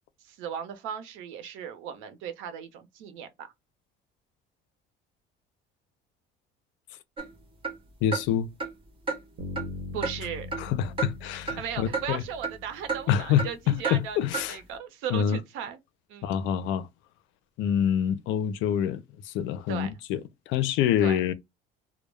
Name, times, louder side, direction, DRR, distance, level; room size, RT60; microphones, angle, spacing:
voice 1, 0.3-3.5 9.9-10.5 11.6-15.8 16.1-16.3 19.7-19.9 21.0-21.2, right 8 dB, 90° right, 0.7 m, -37 dB
sound 1, 7.2-7.3 7.6-7.8 8.1-8.3 8.6-8.7 9.1-9.2 9.6-9.7 10.0-10.2 10.5-10.7 11.0-11.1 11.5-11.6 11.9-12.0 12.4-12.6 12.9-13.0 13.4-13.5 13.8-14.0 14.3-14.5, right 4 dB, 25° right, 0.7 m, -30 dB
voice 2, 8.0-8.5 10.6-12.2 13.1-14.6 15.1-15.4 16.2-16.9 17.6-20.2 20.5-21.3, left 9 dB, 75° left, 0.5 m, -26 dB
Bass guitar, 9.4-13.3, left 3 dB, 70° right, 1.0 m, -41 dB
2.2 x 2.1 x 3.1 m
cardioid pair, 155°, 20 cm